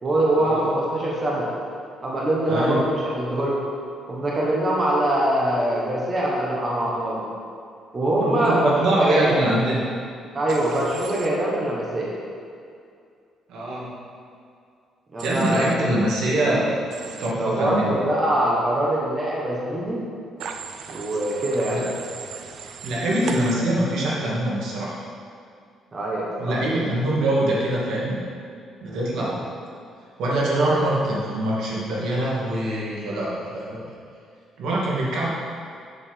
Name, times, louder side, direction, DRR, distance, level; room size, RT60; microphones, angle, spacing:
voice 1, 0.0-1.5 2.0-3.6 4.1-7.3 7.9-9.4 10.3-12.1 15.1-15.7 17.4-20.0 20.9-21.8 25.9-26.5 28.8-29.0, right 1 dB, 25° right, -5 dB, 1.3 m, -23 dB
voice 2, 2.5-2.8 8.2-9.8 13.5-13.9 15.2-16.7 17.2-18.0 21.7-21.9 22.8-25.0 26.4-28.2 28.8-29.4 30.2-33.9 34.6-35.3, right 1 dB, 75° right, -5 dB, 2.2 m, -24 dB
Human voice / Train, 10.5-11.3 15.2-15.7 16.9-17.3 20.4-23.5, right 6 dB, 60° right, 0.5 m, -37 dB
7.5 x 6.8 x 5.3 m, 2.4 s
cardioid pair, 160°, 0 cm